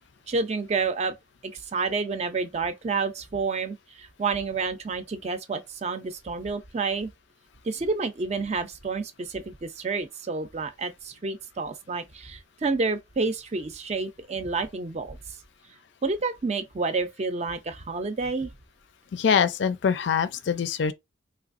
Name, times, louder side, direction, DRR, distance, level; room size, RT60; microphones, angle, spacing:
voice 1, 0.3-1.1 1.4-7.1 7.6-15.2 16.0-18.5, right 4 dB, 35° right, 0.4 m, -29 dB
voice 2, 19.1-20.9, left 6 dB, 65° left, 0.4 m, -24 dB
3.3 x 2.9 x 2.4 m
head